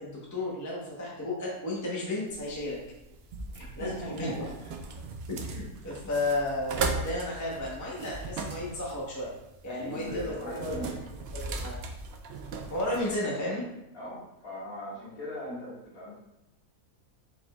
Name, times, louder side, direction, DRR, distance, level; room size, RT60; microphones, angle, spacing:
voice 1, 0.0-2.8 3.8-4.4 5.3-9.3 9.6-10.9 11.3-11.8 12.7-13.6, left 1 dB, 15° left, -4 dB, 0.8 m, -33 dB
sound 1, 2.3-13.2, right 3 dB, 75° right, 0.5 m, -38 dB
voice 2, 3.5-4.5 9.7-10.9 13.9-16.2, left 1 dB, 70° left, -8 dB, 2.3 m, -39 dB
4.9 x 4.2 x 2.3 m, 0.88 s
omnidirectional pair, 1.6 m